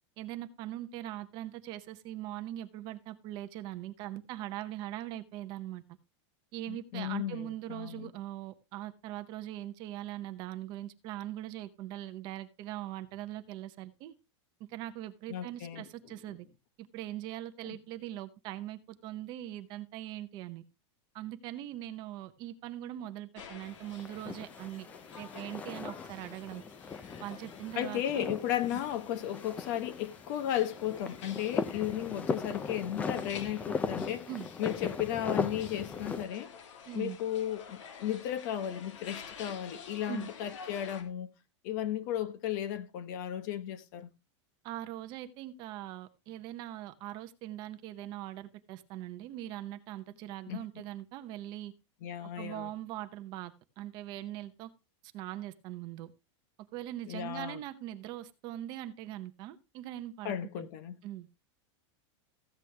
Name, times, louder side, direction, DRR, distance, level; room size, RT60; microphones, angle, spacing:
voice 1, 0.2-5.8 6.5-14.1 14.6-16.5 16.8-20.6 21.1-24.9 25.2-26.6 27.2-28.3 28.7-28.8 34.3-34.5 36.9-37.2 40.1-40.3 44.6-51.7 52.2-54.7 55.1-56.1 56.7-60.7 61.0-61.3, right 13 dB, 30° right, 0.8 m, -41 dB
voice 2, 6.7-8.1 15.3-15.8 17.6-17.8 27.7-34.3 34.6-36.5 36.9-41.3 41.6-44.1 50.5-50.6 52.0-52.7 57.1-57.6 60.2-61.0, left 11 dB, 40° left, 1.2 m, -35 dB
sound 1, 23.3-41.0, left 7 dB, 90° left, 3.1 m, -50 dB
sound 2, 23.7-36.2, left 5 dB, 10° left, 0.5 m, -39 dB
15.0 x 8.2 x 3.4 m
supercardioid pair, 175°, 15 cm